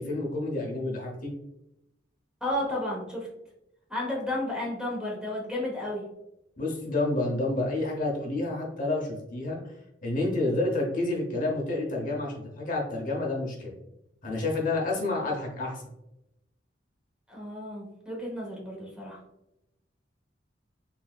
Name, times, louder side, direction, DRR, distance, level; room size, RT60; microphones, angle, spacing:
voice 1, 0.0-1.3 6.6-9.7 10.0-13.7 14.2-15.8, left 2 dB, 45° left, -1 dB, 0.9 m, -29 dB
voice 2, 2.4-3.3 3.9-6.0 17.3-19.2, left 1 dB, 5° right, -3 dB, 1.0 m, -32 dB
4.2 x 3.5 x 2.4 m, 0.87 s
head